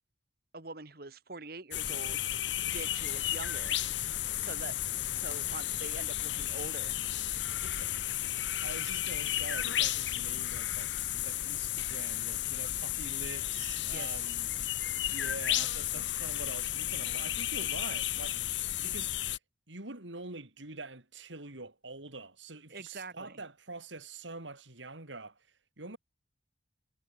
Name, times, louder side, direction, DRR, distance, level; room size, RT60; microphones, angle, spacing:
voice 1, 0.5-2.3 2.7-3.8 4.4-4.7 5.1-7.0 13.9-14.2 22.7-23.4, right 3 dB, 55° right, 2.1 m, -44 dB
sound 1, 1.7-19.4, left 12 dB, 80° left, 1.3 m, -33 dB
voice 2, 7.6-7.9 8.3-18.5 18.8-19.1 19.7-25.4 25.8-26.0, right 3 dB, 85° right, 4.1 m, -45 dB
head